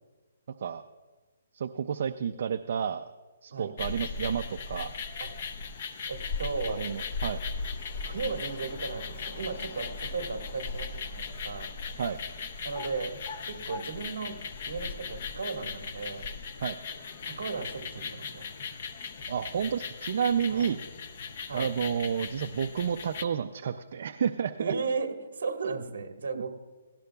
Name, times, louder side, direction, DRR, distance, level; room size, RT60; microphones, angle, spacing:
voice 1, 1.5-3.1 3.4-4.9 6.7-7.4 12.0-12.2 16.6-16.8 19.3-20.8 21.5-24.7, right 7 dB, 40° right, 7 dB, 0.4 m, -30 dB
sound 1, 3.8-23.2, left 4 dB, 30° left, 0.6 m, -38 dB
voice 2, 5.2-5.5 6.1-7.0 8.0-11.7 12.6-13.2 13.4-16.3 17.2-18.5 20.5-20.7 21.5-21.7 24.6-26.5, right 4 dB, 55° right, 5 dB, 1.5 m, -35 dB
18.0 x 16.5 x 2.3 m, 1.3 s
hypercardioid pair, 180°, 0 cm